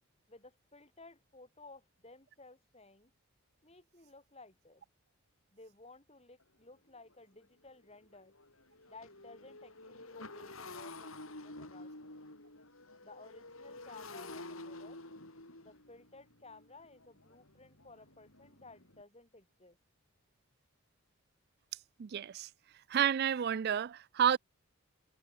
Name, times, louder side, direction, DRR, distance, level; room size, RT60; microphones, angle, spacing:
voice 1, 0.3-3.1 3.6-4.8 5.5-8.3 8.9-12.2 13.0-15.0 15.6-19.8, left 3 dB, 30° left, 7.3 m, -56 dB
Motorcycle, 6.4-6.5 7.0-7.1 7.4-19.0, left 2 dB, 70° left, 7.2 m, -50 dB
voice 2, 22.0-22.5 22.9-24.4, right 9 dB, 50° right, 0.3 m, -30 dB
head